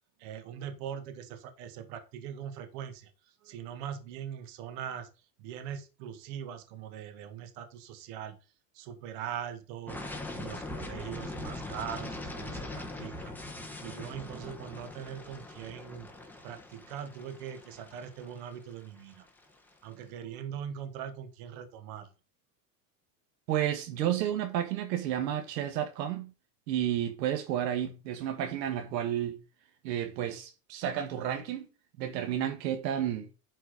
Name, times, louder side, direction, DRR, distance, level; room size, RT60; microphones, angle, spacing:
voice 1, 0.2-5.1 5.4-8.4 8.7-10.0 10.3-13.3 13.8-16.1 16.4-19.3 19.8-22.1, right 9 dB, 60° right, 1.9 m, -41 dB
sound 1, 9.9-19.7, left 2 dB, 5° left, 1.3 m, -42 dB
voice 2, 23.5-26.3 26.7-29.4 29.8-31.7 32.0-33.3, right 10 dB, 85° right, 1.7 m, -31 dB
10.5 x 4.6 x 4.9 m
supercardioid pair, 135°, 49 cm